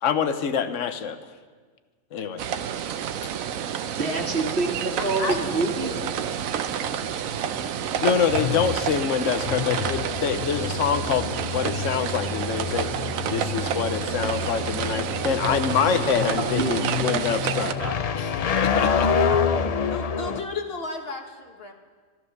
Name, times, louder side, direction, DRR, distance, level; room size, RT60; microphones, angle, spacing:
voice 1, 0.0-1.2 2.1-2.5 8.0-17.8 18.1-18.3 18.6-19.1, left 7 dB, 70° left, 10 dB, 1.1 m, -26 dB
sound 1, 2.4-17.7, right 8 dB, 85° right, 1.1 m, -29 dB
voice 2, 4.0-5.9 16.4-17.2 17.5-18.0, right 2 dB, 50° right, 2 dB, 1.9 m, -27 dB
voice 3, 5.2-6.1 19.9-21.7, left 3 dB, 50° left, 4 dB, 1.5 m, -33 dB
sound 2, 5.4-20.4, left 6 dB, 85° left, 0.3 m, -28 dB
14.0 x 12.5 x 6.5 m, 1.5 s
omnidirectional pair, 1.4 m